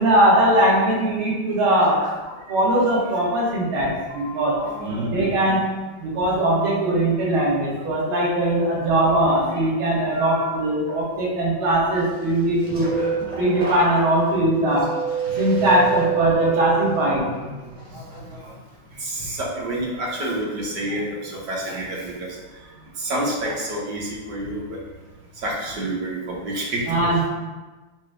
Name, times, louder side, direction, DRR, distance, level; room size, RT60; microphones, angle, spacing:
voice 1, 0.0-2.0 2.5-4.6 5.1-5.6 6.0-12.9 13.4-14.9 15.4-17.2 26.9-27.3, right 1 dB, 85° right, -5 dB, 2.1 m, -20 dB
voice 2, 1.7-2.1 3.0-3.2 4.2-5.4 8.3-8.4 10.1-10.6 12.8-13.0 13.6-14.0 15.6-16.1 16.5-16.6 17.2-17.5 17.9-18.5 19.0-22.4 23.0-24.8 25.4-27.1, right 1 dB, 60° right, -4 dB, 1.2 m, -30 dB
sound 1, 12.3-17.3 17.8-18.2, right 6 dB, 25° right, 0.7 m, -27 dB
4.7 x 2.2 x 4.7 m, 1.2 s
omnidirectional pair, 2.2 m